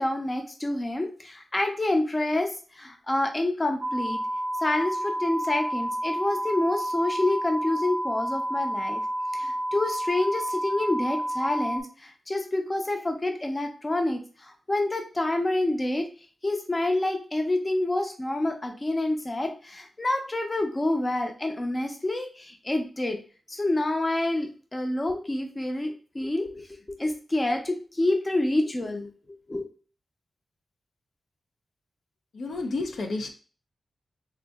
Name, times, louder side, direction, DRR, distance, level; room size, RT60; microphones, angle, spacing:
voice 1, 0.0-4.2 4.6-9.0 9.3-16.1 16.4-23.2 23.5-29.1 29.5-29.7, left 2 dB, 20° left, 4 dB, 0.5 m, -28 dB
sound 1, 3.8-11.8, right 1 dB, 30° right, 0.4 m, -30 dB
voice 2, 32.3-33.3, left 3 dB, 75° left, 4 dB, 0.5 m, -30 dB
3.8 x 2.6 x 2.3 m, 0.39 s
wide cardioid pair, 140°, 0 cm